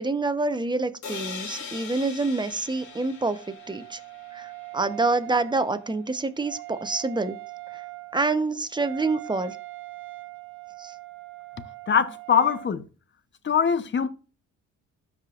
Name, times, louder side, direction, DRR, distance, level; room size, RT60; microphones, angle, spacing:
voice 1, 0.0-3.4 3.7-4.0 4.3-7.4 7.7-7.8 8.1-9.6 10.8-10.9, right 3 dB, 15° right, 0.9 m, -27 dB
sound 1, 1.0-4.8, left 5 dB, 70° left, 2.5 m, -40 dB
Wind instrument woodwind instrument, 2.7-12.7, right 21 dB, 90° right, 0.8 m, -42 dB
voice 2, 11.9-12.8 13.4-14.1, left 7 dB, 40° left, 0.9 m, -22 dB
13.0 x 5.2 x 2.5 m
cardioid pair, 90°, 30 cm